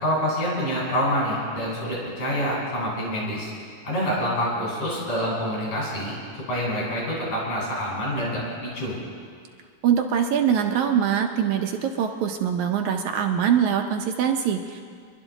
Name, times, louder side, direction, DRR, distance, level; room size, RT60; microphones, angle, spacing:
voice 1, 0.0-3.5 3.8-6.2 6.5-9.0, equal, 65° left, -4 dB, 6.0 m, -26 dB
voice 2, 9.8-14.8, right 8 dB, 75° right, 3 dB, 2.0 m, -23 dB
25.5 x 11.5 x 4.0 m, 2.1 s
omnidirectional pair, 3.8 m